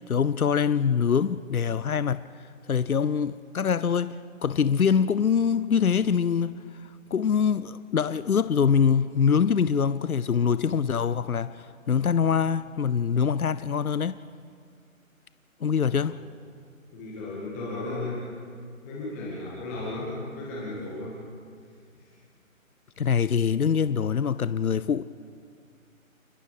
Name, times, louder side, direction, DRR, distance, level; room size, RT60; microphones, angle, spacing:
voice 1, 0.1-14.2 15.6-16.2 23.0-25.0, left 7 dB, 90° left, 0.8 m, -24 dB
voice 2, 16.9-18.2 18.8-21.2 21.9-22.1, left 2 dB, 10° left, 2.1 m, -35 dB
29.0 x 21.0 x 5.1 m
figure-of-eight pair, 165°, 42 cm